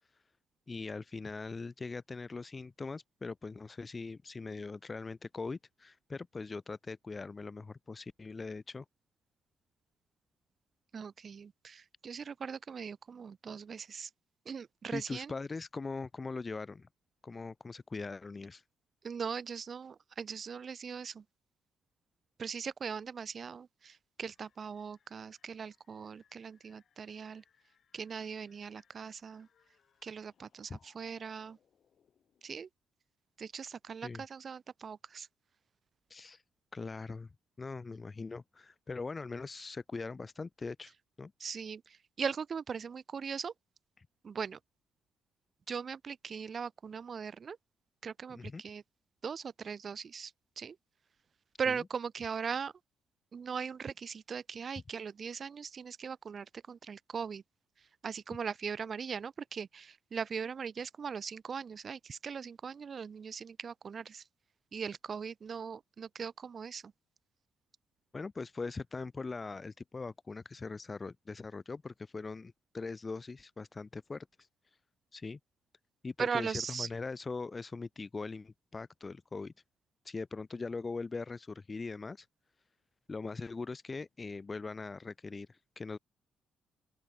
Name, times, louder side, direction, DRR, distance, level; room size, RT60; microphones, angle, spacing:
voice 1, 0.7-8.8 14.9-16.9 17.2-18.6 30.7-30.8 34.0-34.2 36.1-36.4 36.7-37.3 37.6-41.3 48.3-48.6 51.7-51.8 68.1-74.3 75.1-75.4 76.0-79.5 80.0-82.3 83.1-86.0, left 4 dB, 30° left, 0.7 m, -41 dB
voice 2, 10.9-14.1 14.5-15.3 19.0-21.2 22.4-27.4 27.9-29.5 30.0-31.6 32.4-32.7 33.4-35.3 41.4-43.5 44.2-44.6 45.7-47.6 48.0-48.8 49.2-50.8 51.6-52.7 53.3-57.4 58.0-64.2 64.7-66.9 76.2-76.9, right 6 dB, 45° right, 0.9 m, -40 dB
sound 1, 24.2-32.6, left 8 dB, 55° left, 7.9 m, -72 dB
open air
cardioid pair, 90°, 0 cm